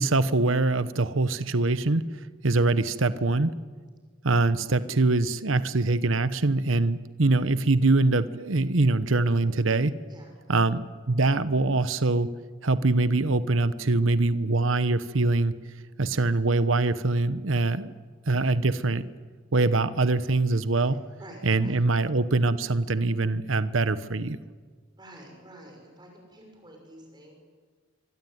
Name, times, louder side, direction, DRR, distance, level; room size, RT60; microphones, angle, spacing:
voice 1, 0.0-2.0 2.4-3.5 4.2-10.0 10.5-12.3 12.6-15.6 16.0-17.9 18.3-19.1 19.5-21.0 21.4-24.4, right 2 dB, 75° right, 13 dB, 1.0 m, -23 dB
voice 2, 20.7-21.8 25.0-27.4, right 1 dB, 20° right, 1 dB, 6.4 m, -49 dB
26.0 x 24.5 x 9.4 m, 1.5 s
head